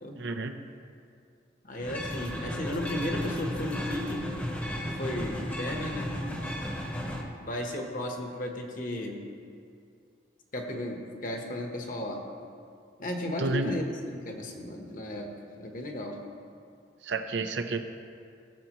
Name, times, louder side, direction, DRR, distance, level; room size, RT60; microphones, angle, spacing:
voice 1, 0.2-0.6 13.4-13.8 17.0-17.8, right 3 dB, 75° right, 7 dB, 0.6 m, -30 dB
voice 2, 1.7-4.3 5.0-6.1 7.5-9.2 10.5-12.2 13.0-15.3 15.6-16.2, left 1 dB, 45° left, 2 dB, 1.1 m, -34 dB
sound 1, 1.8-7.2, equal, 10° left, 0.9 m, -34 dB
16.5 x 7.8 x 3.0 m, 2.4 s
head